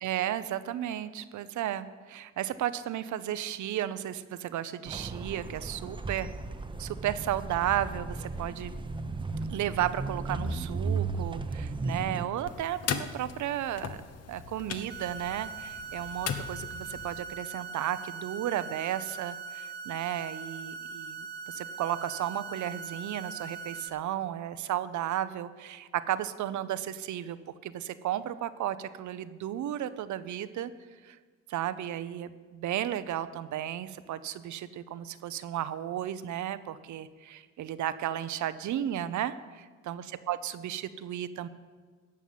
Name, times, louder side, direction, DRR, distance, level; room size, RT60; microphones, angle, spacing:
voice 1, 0.0-6.3 6.8-8.7 9.5-14.0 14.3-27.4 27.6-30.7 31.0-31.2 31.5-41.5, right 11 dB, 70° right, 14 dB, 0.8 m, -34 dB
sound 1, 4.9-12.2, right 3 dB, 15° right, 0.8 m, -35 dB
sound 2, 12.4-17.2, left 7 dB, 55° left, 1.0 m, -38 dB
sound 3, 14.9-23.9, right 5 dB, 35° right, 1.2 m, -41 dB
14.5 x 5.7 x 9.3 m, 1.5 s
cardioid pair, 90°, 30 cm